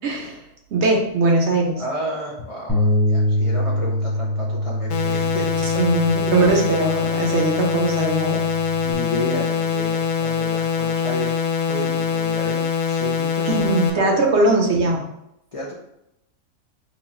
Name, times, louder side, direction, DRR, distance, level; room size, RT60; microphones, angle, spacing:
voice 1, 0.0-0.4 0.7-1.8 5.6-8.4 13.5-15.0, right 2 dB, 60° right, 0 dB, 0.9 m, -20 dB
voice 2, 1.8-5.8 8.7-11.3 11.7-14.2 15.5-15.7, left 1 dB, 55° left, -4 dB, 0.3 m, -32 dB
Bass guitar, 2.7-8.9, left 1 dB, 10° left, 0.8 m, -25 dB
sound 1, 4.9-13.9, left 7 dB, 80° left, 0.9 m, -23 dB
3.0 x 2.3 x 4.1 m, 0.81 s
omnidirectional pair, 1.4 m